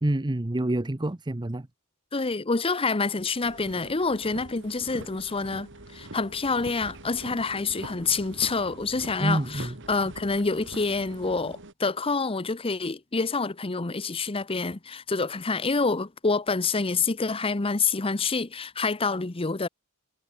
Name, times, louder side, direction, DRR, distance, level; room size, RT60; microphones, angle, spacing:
voice 1, 0.0-1.7 9.2-9.8, right 1 dB, 20° right, 0.8 m, -27 dB
voice 2, 2.1-19.7, left 4 dB, 25° left, 0.8 m, -27 dB
sound 1, 3.4-11.7, right 2 dB, 55° right, 3.1 m, -43 dB
head